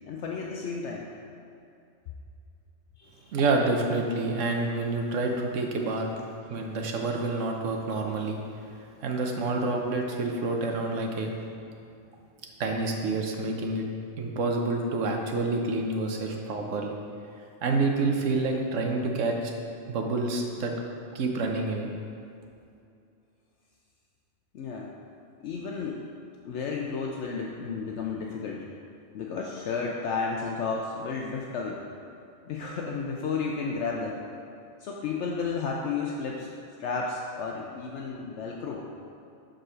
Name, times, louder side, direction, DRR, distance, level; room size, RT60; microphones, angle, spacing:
voice 1, 0.1-1.0 3.0-3.3 24.5-24.9 25.4-26.0 26.4-28.7 29.1-31.8 32.5-34.2 34.8-36.5 36.8-38.8, left 5 dB, 70° left, -1 dB, 0.9 m, -32 dB
voice 2, 3.3-6.1 6.5-8.4 9.0-11.3 12.6-13.9 14.2-17.0 17.6-19.5 19.9-20.7 21.1-21.9, right 3 dB, 80° right, 2 dB, 1.2 m, -28 dB
5.1 x 5.0 x 6.1 m, 2.5 s
omnidirectional pair, 1.3 m